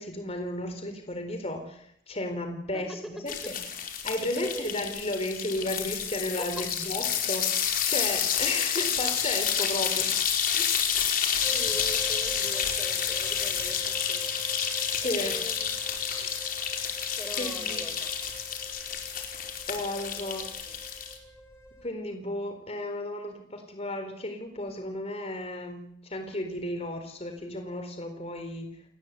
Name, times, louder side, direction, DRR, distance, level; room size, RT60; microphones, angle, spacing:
voice 1, 0.0-3.6 4.0-10.1 10.6-11.1 14.9-15.4 16.1-16.4 17.3-17.9 19.7-20.5 21.8-28.8, left 1 dB, 35° left, 6 dB, 4.1 m, -34 dB
sound 1, 3.3-21.2, left 8 dB, 55° left, 4.6 m, -29 dB
voice 2, 4.2-4.7 6.4-6.6 10.8-10.9 11.5-14.4 15.0-16.0 17.2-18.1 20.2-20.7, equal, ahead, 7 dB, 4.6 m, -42 dB
sound 2, 11.4-21.9, equal, 15° left, 6.5 m, -45 dB
30.0 x 20.0 x 8.4 m, 0.72 s
head